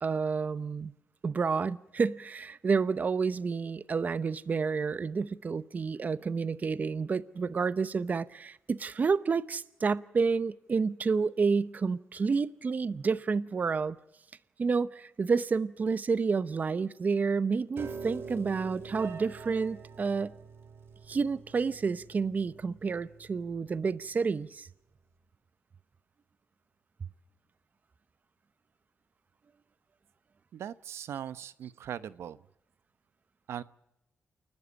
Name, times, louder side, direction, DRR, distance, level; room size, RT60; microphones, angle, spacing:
voice 1, 0.0-0.9 1.2-14.0 14.6-20.3 21.1-24.7, right 5 dB, 40° right, 0.8 m, -29 dB
Piano, 17.8-24.0, right 5 dB, 60° right, 2.7 m, -45 dB
voice 2, 30.5-32.4 33.5-33.6, right 9 dB, 80° right, 0.8 m, -39 dB
29.0 x 12.5 x 8.9 m
cardioid pair, 105°, 4 cm